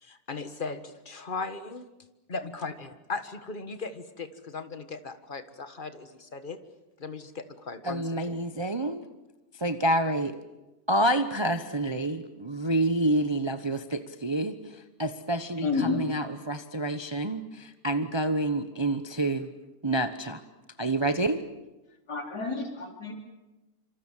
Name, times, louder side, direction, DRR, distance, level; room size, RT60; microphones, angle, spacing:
voice 1, 0.0-1.9 2.3-6.6 7.0-8.4, left 4 dB, 30° left, 10 dB, 1.7 m, -38 dB
voice 2, 7.8-9.0 9.6-10.3 10.9-19.5 19.8-20.4 20.8-21.4, right 1 dB, 20° right, 9 dB, 0.9 m, -28 dB
voice 3, 15.6-16.0 22.1-23.1, left 4 dB, 80° left, 2 dB, 4.7 m, -30 dB
26.5 x 26.0 x 7.4 m, 1.0 s
omnidirectional pair, 1.7 m